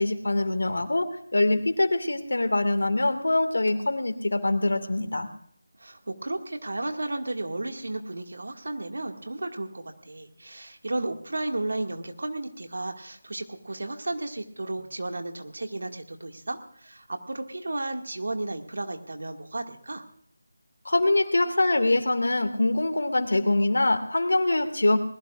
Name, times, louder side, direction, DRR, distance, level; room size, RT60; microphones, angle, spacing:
voice 1, 0.0-5.3 20.8-25.0, left 2 dB, 80° left, 8 dB, 2.2 m, -24 dB
voice 2, 5.8-20.0, right 2 dB, 70° right, 4 dB, 2.1 m, -33 dB
20.5 x 20.0 x 2.5 m, 0.63 s
figure-of-eight pair, 165°, 0 cm